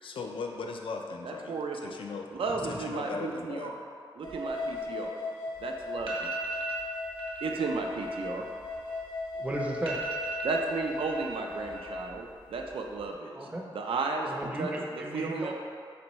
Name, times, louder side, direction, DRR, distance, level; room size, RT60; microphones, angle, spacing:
voice 1, 0.0-1.6 1.8-2.3 2.7-3.7, left 4 dB, 80° left, 3 dB, 0.4 m, -38 dB
voice 2, 1.2-1.8 2.3-3.8 4.2-5.2 5.6-6.3 7.4-8.5 10.4-13.5 13.7-14.3 14.6-14.7 15.1-15.5, right 4 dB, 90° right, 2 dB, 0.4 m, -34 dB
sound 1, 4.2-11.9, left 3 dB, 55° left, 0.8 m, -38 dB
sound 2, 5.6-5.7 6.0-6.8 7.2-7.5 7.8-9.3 9.5-9.6 9.9-11.3 11.6-12.2 12.5-13.0, right 4 dB, 75° right, 0.8 m, -37 dB
voice 3, 9.3-10.0 13.3-13.7 14.2-15.5, right 1 dB, 15° right, -1 dB, 0.5 m, -35 dB
4.1 x 3.4 x 3.0 m, 2.1 s
wide cardioid pair, 95°, 9 cm